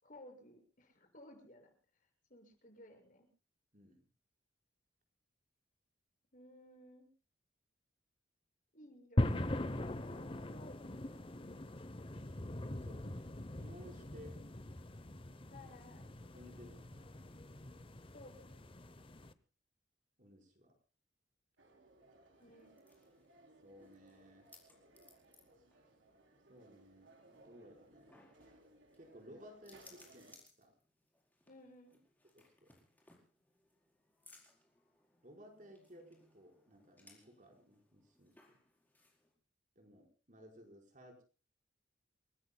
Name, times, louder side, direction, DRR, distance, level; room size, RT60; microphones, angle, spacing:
voice 1, 0.0-1.7 2.0-3.3 6.3-7.1 8.7-9.3 10.0-11.0 15.5-16.0 18.1-18.6 22.4-22.8 31.5-32.0, left 1 dB, 45° left, 3 dB, 6.6 m, -57 dB
sound 1, 9.2-19.3, left 1 dB, 30° left, 0.9 m, -41 dB
voice 2, 12.7-13.3 13.6-14.4 16.3-17.1 20.2-20.7 23.6-24.5 26.5-28.2 28.9-30.7 32.3-32.7 35.2-38.3 39.7-41.2, equal, 45° right, 1 dB, 5.0 m, -58 dB
sound 2, 21.6-30.3, right 2 dB, 85° right, 3.5 m, -64 dB
sound 3, 22.3-39.3, left 2 dB, 10° left, 4.9 m, -67 dB
29.5 x 18.5 x 2.3 m, 0.34 s
head